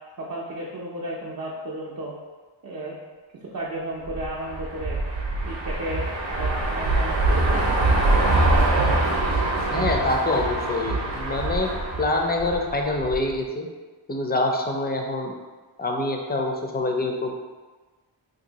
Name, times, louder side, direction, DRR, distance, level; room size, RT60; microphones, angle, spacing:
voice 1, 0.2-2.1 2.6-2.9 3.5-5.0 5.4-8.0, right 1 dB, 45° right, -5 dB, 0.5 m, -33 dB
sound 1, 4.1-13.3, right 2 dB, 75° right, 0.7 m, -24 dB
voice 2, 9.7-11.7 12.0-13.7 14.1-15.3 15.8-17.4, left 2 dB, 25° left, 2 dB, 0.4 m, -25 dB
2.7 x 2.6 x 3.9 m, 1.3 s
wide cardioid pair, 100°, 46 cm